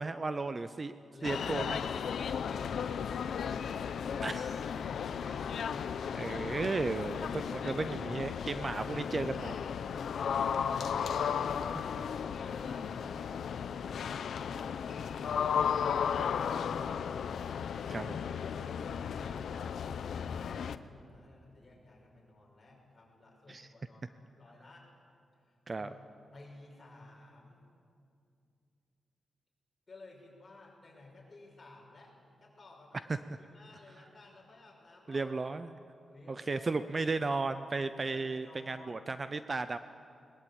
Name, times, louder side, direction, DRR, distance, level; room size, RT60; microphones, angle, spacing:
voice 1, 0.0-0.9 1.2-1.8 4.2-4.5 6.1-9.6 17.9-18.2 23.5-23.7 25.7-25.9 35.1-35.7 36.3-39.8, right 3 dB, 25° right, 11 dB, 0.5 m, -34 dB
voice 2, 1.1-1.7 2.1-5.5 10.1-11.0 11.2-11.7 12.1-17.9 18.4-24.9 25.4-25.9 26.3-27.6 29.9-35.4 36.1-37.1 38.1-39.1, left 2 dB, 25° left, -3 dB, 6.2 m, -54 dB
sound 1, 1.2-20.8, left 7 dB, 75° left, 0.7 m, -35 dB
20.5 x 20.5 x 8.7 m, 2.5 s
wide cardioid pair, 155°, 0 cm